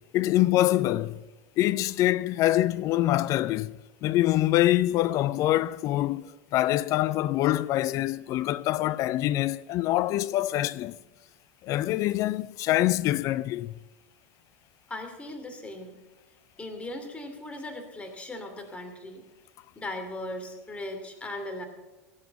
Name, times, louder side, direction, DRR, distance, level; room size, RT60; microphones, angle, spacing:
voice 1, 0.1-1.2 1.6-10.9 11.6-13.7, left 15 dB, 45° left, 0.4 m, -25 dB
voice 2, 14.9-15.9 16.6-19.2 19.8-21.7, left 1 dB, 15° left, 2.8 m, -38 dB
17.0 x 8.1 x 7.0 m
hypercardioid pair, 85°, 8 cm